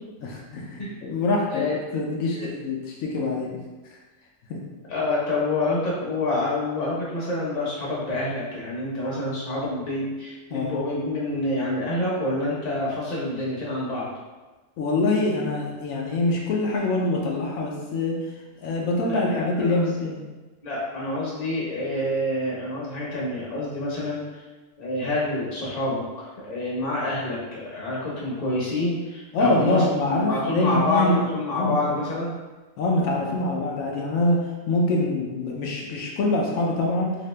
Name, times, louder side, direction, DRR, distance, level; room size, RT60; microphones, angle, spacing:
voice 1, 0.2-1.7 1.9-3.5 3.8-4.0 4.5-4.6 10.5-10.7 14.8-18.2 18.6-20.2 29.3-31.2 31.5-31.8 32.8-37.2, left 2 dB, 85° left, -1 dB, 1.0 m, -24 dB
voice 2, 4.9-14.1 19.0-19.9 20.6-24.5 24.8-32.3, left 2 dB, 35° left, -6 dB, 0.9 m, -27 dB
2.9 x 2.7 x 3.2 m, 1.2 s
omnidirectional pair, 1.4 m